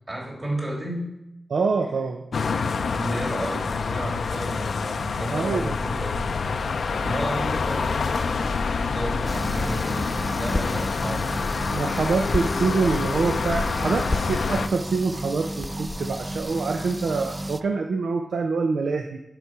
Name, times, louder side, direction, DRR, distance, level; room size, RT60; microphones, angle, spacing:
voice 1, 0.1-1.1 2.5-6.3 7.0-11.6, right 1 dB, 35° right, -3 dB, 3.2 m, -33 dB
voice 2, 1.5-2.2 5.3-6.0 11.7-19.2, right 4 dB, 85° right, 5 dB, 0.6 m, -25 dB
sound 1, 2.3-14.7, left 5 dB, 80° left, 0.5 m, -27 dB
Crackle, 5.6-16.4, left 2 dB, 25° left, 0.8 m, -36 dB
sound 2, 9.2-17.6, right 1 dB, 15° right, 0.4 m, -34 dB
11.0 x 4.9 x 6.0 m, 0.87 s
wide cardioid pair, 70°, 0 cm